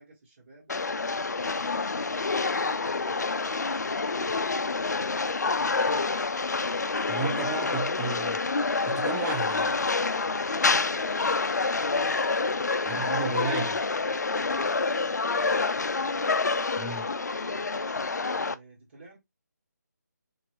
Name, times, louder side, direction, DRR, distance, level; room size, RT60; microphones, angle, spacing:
voice 1, 0.0-6.1 10.6-11.9 12.5-13.6 14.7-16.3 17.3-18.0 18.3-19.2, right 2 dB, 40° right, 1.4 m, -52 dB
sound 1, 0.7-18.5, left 4 dB, 70° left, 0.4 m, -27 dB
voice 2, 7.1-8.4 8.9-9.7 12.8-13.8 16.8-17.1, right 4 dB, 10° right, 0.4 m, -33 dB
3.6 x 3.3 x 3.0 m
figure-of-eight pair, 150°, 10 cm